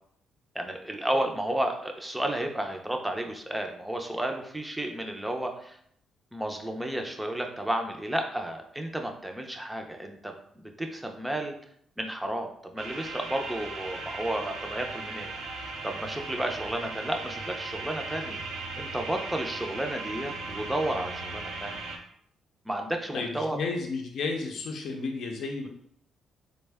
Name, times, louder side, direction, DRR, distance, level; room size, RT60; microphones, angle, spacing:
voice 1, 0.5-5.8 6.3-11.6 12.0-15.3 15.8-18.4 18.8-21.8 22.6-23.6, right 1 dB, 5° right, 3 dB, 0.5 m, -32 dB
sound 1, 12.8-22.0, right 3 dB, 90° right, 0.6 m, -37 dB
voice 2, 23.1-25.7, left 4 dB, 65° left, 2 dB, 0.6 m, -32 dB
3.4 x 2.2 x 3.4 m, 0.67 s
cardioid pair, 90°, 0 cm